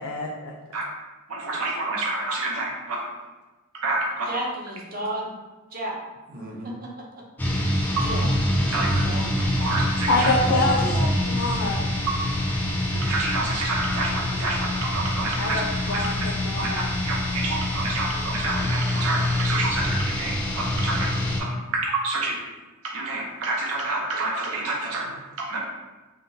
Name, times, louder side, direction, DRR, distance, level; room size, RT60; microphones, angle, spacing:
voice 1, 0.0-0.5 10.1-11.0 11.3-11.8 15.4-16.9, left 2 dB, 80° left, -1 dB, 0.4 m, -25 dB
voice 2, 1.3-3.1 3.7-4.4 8.0-8.1 8.7-9.0 9.6-10.3 13.0-15.6 15.9-16.0 16.6-16.7 17.0-21.1 21.4-22.4 22.8-25.1 25.4-25.6, right 2 dB, 90° right, -2 dB, 0.6 m, -28 dB
voice 3, 4.3-5.3 5.7-6.0 6.3-6.9 8.0-8.3 8.7-9.5 10.5-11.1, right 1 dB, 40° right, -2 dB, 0.5 m, -33 dB
sound 1, 7.4-21.4, left 1 dB, 10° left, 0.3 m, -25 dB
3.5 x 2.2 x 2.6 m, 1.2 s
head